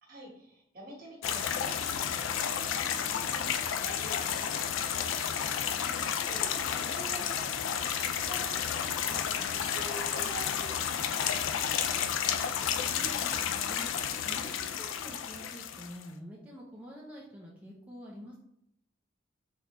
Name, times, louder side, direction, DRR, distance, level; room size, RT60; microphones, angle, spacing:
voice 1, 0.0-5.8 6.1-12.4, right 1 dB, 50° right, -2 dB, 1.4 m, -47 dB
sound 1, 1.2-16.0, left 8 dB, 90° left, 0.4 m, -31 dB
voice 2, 5.5-6.1 12.9-18.4, equal, 5° right, -4 dB, 0.6 m, -47 dB
4.2 x 3.7 x 3.0 m, 0.77 s
head